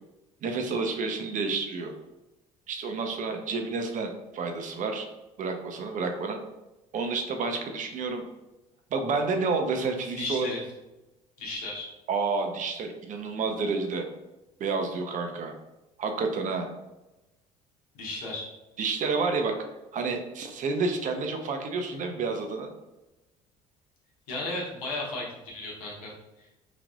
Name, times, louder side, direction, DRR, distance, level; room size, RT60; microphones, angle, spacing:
voice 1, 0.4-1.9 2.7-5.1 5.4-6.4 6.9-8.2 8.9-10.5 12.1-14.0 14.6-15.6 16.0-16.7 18.8-19.5 19.9-22.7, right 4 dB, 45° right, 4 dB, 0.6 m, -29 dB
voice 2, 10.2-10.6 11.4-11.9 17.9-18.5 24.3-26.1 26.4-26.5, left 2 dB, 85° left, -4 dB, 0.9 m, -34 dB
3.3 x 2.4 x 2.4 m, 1.0 s
hypercardioid pair, 65°, 18 cm